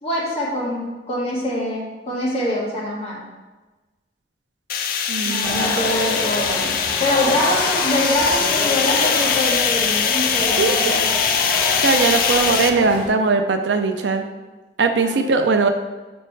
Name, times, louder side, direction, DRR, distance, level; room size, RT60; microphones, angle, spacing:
voice 1, 0.0-3.2 5.2-11.1 12.0-12.2 15.0-15.1, left 1 dB, 35° left, -5 dB, 1.6 m, -24 dB
sound 1, 4.7-12.7, left 7 dB, 50° left, 0.4 m, -22 dB
voice 2, 5.1-5.8 10.6-10.8 11.8-14.3 14.8-15.7, right 4 dB, 80° right, 6 dB, 0.5 m, -20 dB
sound 2, 5.4-13.1, left 1 dB, 10° left, 1.1 m, -27 dB
6.7 x 4.3 x 3.2 m, 1.2 s
head